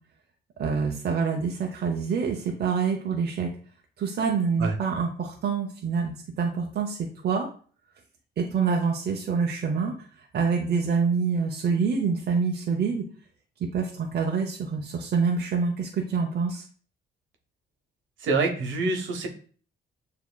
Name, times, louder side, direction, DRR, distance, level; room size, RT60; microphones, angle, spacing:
voice 1, 0.6-3.5 4.0-7.5 8.4-13.1 13.7-16.6, right 5 dB, 55° right, 2 dB, 0.7 m, -26 dB
voice 2, 18.2-19.3, right 3 dB, 75° right, 3 dB, 1.0 m, -26 dB
7.0 x 2.9 x 2.2 m, 0.43 s
cardioid pair, 90°, 20 cm